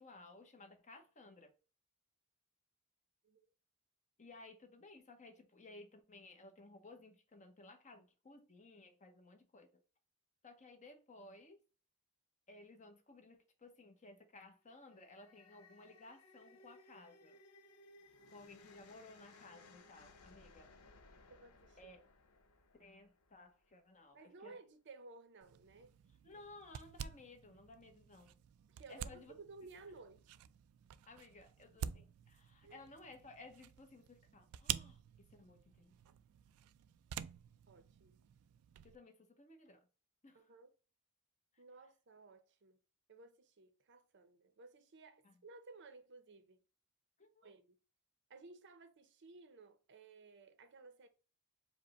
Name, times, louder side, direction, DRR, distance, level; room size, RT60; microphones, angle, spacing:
voice 1, 0.0-1.5 4.2-9.8 10.4-11.6 12.5-17.4 18.3-20.7 21.8-22.0 22.8-24.6 26.2-28.4 28.9-29.3 31.1-36.0 38.8-39.9 40.2-40.5 41.5-41.6 45.2-45.4 47.2-47.5, left 2 dB, 35° left, 0.8 m, -58 dB
sound 1, 14.7-24.0, left 2 dB, 85° left, 0.7 m, -63 dB
voice 2, 21.3-21.9 24.1-25.9 28.7-30.2 32.6-32.8 37.7-38.2 40.3-40.7 41.6-42.8 43.1-46.6 47.4-47.7 48.3-51.1, right 3 dB, 55° right, 0.6 m, -57 dB
sound 2, 25.4-39.0, right 10 dB, 85° right, 0.3 m, -49 dB
5.0 x 2.1 x 4.0 m
head